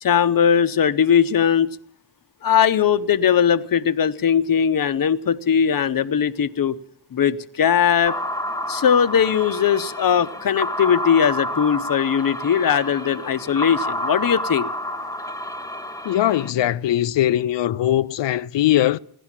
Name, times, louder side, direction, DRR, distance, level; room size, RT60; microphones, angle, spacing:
voice 1, 0.0-1.8 2.4-6.8 7.1-8.2 8.7-14.7, left 8 dB, 50° left, 0.9 m, -19 dB
sound 1, 8.0-16.5, left 1 dB, 10° left, 0.8 m, -29 dB
voice 2, 16.0-19.0, left 12 dB, 70° left, 0.6 m, -20 dB
16.0 x 11.0 x 7.4 m
cardioid pair, 55°, 44 cm